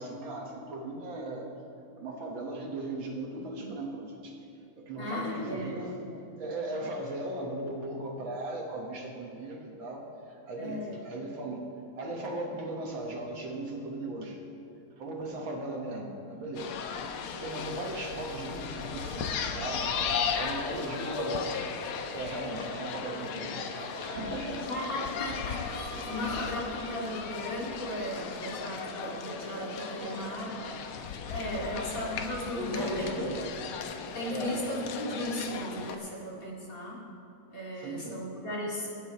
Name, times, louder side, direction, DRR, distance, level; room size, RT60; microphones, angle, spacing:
voice 1, 0.0-1.5 2.0-4.3 4.8-5.9 6.4-14.4 14.9-16.8 17.3-19.9 20.4-21.5 22.1-23.7 24.0-24.7 31.5-31.9 32.6-33.5 34.3-34.6 37.8-38.2, right 2 dB, 65° right, 0 dB, 2.1 m, -37 dB
voice 2, 5.0-6.2 10.5-11.1 20.6-21.1 24.7-33.3 34.1-37.0 37.5-38.9, left 1 dB, 40° left, -5 dB, 2.7 m, -36 dB
sound 1, 16.5-36.0, left 7 dB, 90° left, 1.7 m, -36 dB
sound 2, 18.9-30.7, right 2 dB, 90° right, 2.6 m, -45 dB
24.0 x 9.5 x 3.1 m, 2.6 s
omnidirectional pair, 2.3 m